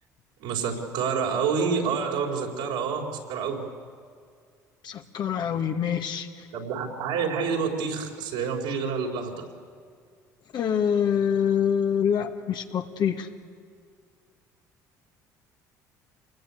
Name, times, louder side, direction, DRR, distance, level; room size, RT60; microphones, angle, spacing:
voice 1, 0.4-3.7 6.5-9.4, right 5 dB, 75° right, -2 dB, 4.4 m, -28 dB
voice 2, 4.8-6.5 10.5-13.3, left 8 dB, 55° left, 5 dB, 2.0 m, -25 dB
26.5 x 20.5 x 8.5 m, 2.2 s
hypercardioid pair, 60°, 9 cm